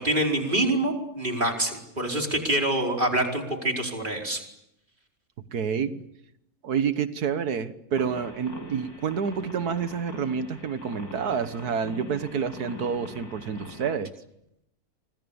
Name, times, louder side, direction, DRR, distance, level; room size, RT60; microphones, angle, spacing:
voice 1, 0.0-4.4, right 1 dB, 30° right, 1 dB, 4.9 m, -26 dB
voice 2, 5.5-6.0 6.6-14.1, right 6 dB, 80° right, 11 dB, 1.8 m, -28 dB
sound 1, 7.9-13.9, equal, 80° left, 6.3 m, -42 dB
29.5 x 25.5 x 7.1 m, 0.82 s
omnidirectional pair, 1.6 m